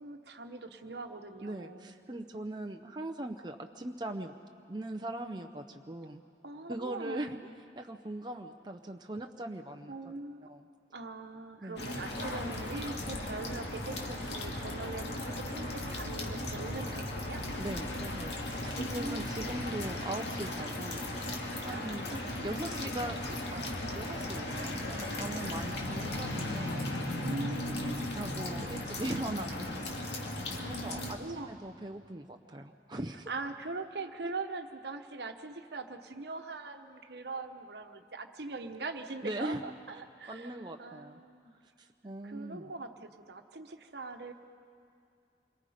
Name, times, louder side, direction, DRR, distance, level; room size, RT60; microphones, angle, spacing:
voice 1, 0.0-1.9 6.4-7.5 9.9-10.5 10.9-17.4 18.8-19.7 21.7-22.0 25.4-25.7 27.2-28.3 30.6-31.9 33.3-41.6 42.2-44.3, right 3 dB, 70° right, 6 dB, 1.2 m, -42 dB
voice 2, 1.4-4.3 4.7-6.2 6.7-7.4 7.8-9.9 10.5-10.6 11.6-11.8 17.6-21.0 21.6-26.8 27.8-29.8 30.7-33.3 39.2-39.8 40.3-41.2 41.8-42.7, right 1 dB, 25° right, 3 dB, 0.7 m, -40 dB
sound 1, 11.8-31.1, left 1 dB, 75° left, 2.2 m, -36 dB
27.5 x 22.5 x 5.1 m, 2.4 s
head